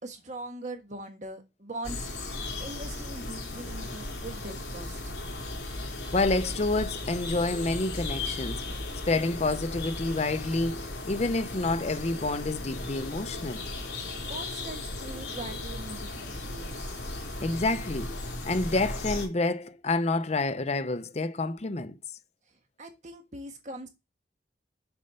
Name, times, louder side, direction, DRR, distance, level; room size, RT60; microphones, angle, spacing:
voice 1, 0.0-5.3 13.9-14.0 14.3-17.1 22.8-23.9, right 2 dB, 45° right, 1.4 m, -42 dB
sound 1, 1.8-19.3, left 2 dB, 75° left, 2.8 m, -36 dB
voice 2, 6.1-8.6 9.1-13.7 17.4-18.2 18.4-22.0, left 2 dB, 40° left, 0.6 m, -28 dB
7.0 x 5.5 x 5.3 m
head